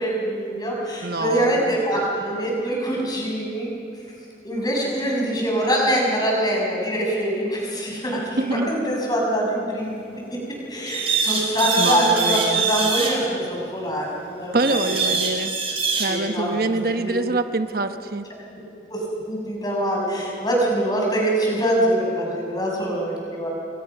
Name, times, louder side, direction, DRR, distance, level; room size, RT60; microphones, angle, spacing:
voice 1, 0.0-3.7 4.4-9.9 10.3-10.4 10.7-14.1 14.4-15.1 15.9-17.0 18.9-23.5, right 1 dB, 20° left, -2 dB, 6.4 m, -24 dB
voice 2, 1.0-1.7 8.3-8.8 11.8-12.7 14.5-15.6 16.0-18.3, right 2 dB, 55° right, 8 dB, 1.0 m, -25 dB
sound 1, 10.9-13.1 14.6-16.1, right 4 dB, 30° right, 4.3 m, -23 dB
28.5 x 23.5 x 6.0 m, 2.7 s
head